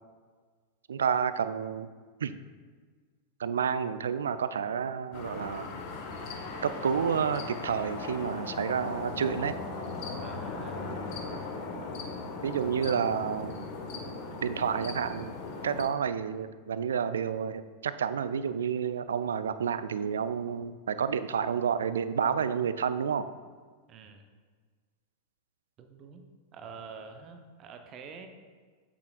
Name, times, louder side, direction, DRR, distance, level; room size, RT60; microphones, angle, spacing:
voice 1, 0.9-1.9 2.2-2.4 3.4-5.8 6.6-9.6 12.4-13.6 14.4-15.3 15.6-23.3, right 7 dB, 65° right, 12 dB, 0.3 m, -30 dB
sound 1, 5.1-15.9, left 3 dB, 45° left, 1.0 m, -38 dB
voice 2, 10.2-11.0 23.9-24.3 25.8-26.3 26.5-28.3, right 5 dB, 35° right, 6 dB, 0.7 m, -46 dB
7.8 x 7.0 x 2.4 m, 1.5 s
figure-of-eight pair, 90°, 0 cm